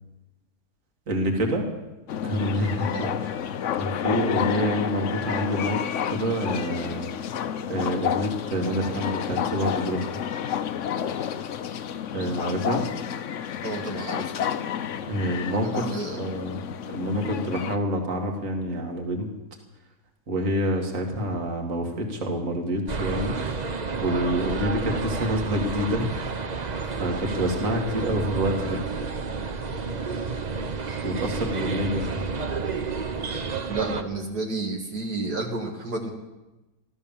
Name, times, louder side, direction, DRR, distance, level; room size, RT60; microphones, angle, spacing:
voice 1, 1.1-1.6 2.2-2.9 3.2-3.3 3.8-5.8 6.1-7.1 7.7-10.1 12.1-12.8 15.1-16.6 16.9-19.3 20.3-23.4 24.0-26.1 27.0-28.8 31.0-32.2, equal, 50° right, 2 dB, 2.4 m, -27 dB
sound 1, 2.1-17.8, left 8 dB, 60° left, 0.9 m, -30 dB
voice 2, 13.6-14.2 15.6-16.3 33.7-36.1, right 3 dB, 75° right, 0 dB, 2.3 m, -31 dB
sound 2, 22.9-34.0, right 4 dB, 35° right, 0.7 m, -30 dB
14.5 x 13.0 x 7.1 m, 1.0 s
omnidirectional pair, 1.7 m